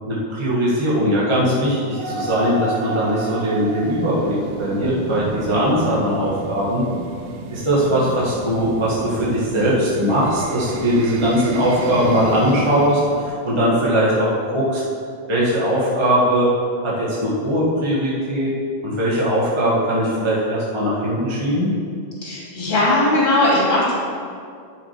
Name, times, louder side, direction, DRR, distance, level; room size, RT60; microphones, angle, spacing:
voice 1, 0.1-6.8 7.5-14.8 15.3-16.5 16.8-18.5 18.8-21.7, equal, 15° right, -7 dB, 0.9 m, -20 dB
sound 1, 2.0-13.3, right 3 dB, 75° right, 1.5 m, -32 dB
voice 2, 22.2-23.9, left 1 dB, 20° left, -6 dB, 2.8 m, -18 dB
11.0 x 6.3 x 5.1 m, 2.3 s
omnidirectional pair, 3.6 m